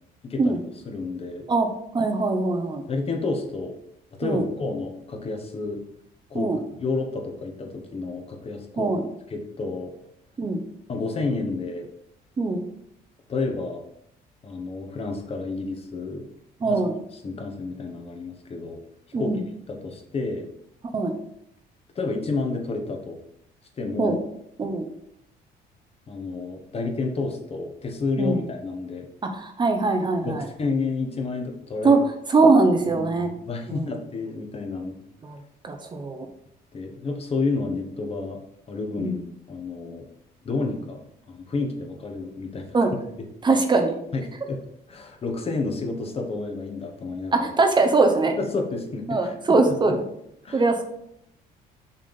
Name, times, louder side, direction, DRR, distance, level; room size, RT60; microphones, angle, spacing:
voice 1, 0.2-0.6 0.8-1.5 2.9-3.7 4.1-5.8 6.3-6.5 6.8-8.9 9.3-9.9 10.9-11.9 13.3-13.8 14.4-16.3 16.6-16.9 17.2-18.8 19.2-19.3 19.7-20.5 21.9-23.2 23.8-24.2 26.1-29.1 30.2-32.0 32.9-35.1 36.7-38.4 38.7-39.2 39.5-40.0 40.4-42.8 44.1-44.6 44.9-47.5 48.4-50.0 50.4-50.6, left 3 dB, 35° left, 3 dB, 1.3 m, -30 dB
voice 2, 1.9-2.8 4.2-4.4 6.3-6.6 8.8-9.0 10.4-10.6 12.4-12.6 16.6-16.9 19.1-19.4 20.9-21.1 24.0-24.2 24.6-24.9 28.2-28.4 29.2-30.5 31.8-32.0 32.3-33.3 33.7-34.0 35.2-35.4 35.6-36.3 39.0-39.2 42.7-42.9 43.4-43.9 47.3-48.3 49.1-50.0 50.5-50.8, right 3 dB, 25° right, 5 dB, 0.8 m, -21 dB
6.6 x 3.7 x 5.5 m, 0.76 s
cardioid pair, 110°, 17 cm